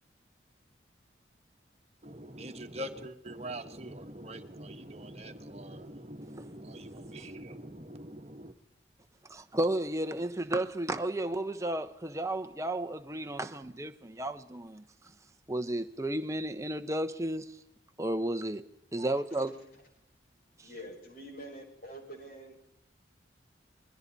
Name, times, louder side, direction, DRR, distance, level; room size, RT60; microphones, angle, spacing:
voice 1, 2.0-8.5, right 1 dB, 35° right, 1.5 m, -43 dB
voice 2, 9.3-14.8 15.5-17.6 18.0-18.6 18.9-19.5, right 1 dB, 15° right, 1.0 m, -33 dB
voice 3, 19.0-19.5 20.6-22.6, equal, 55° left, 6.3 m, -47 dB
28.5 x 22.5 x 4.2 m
head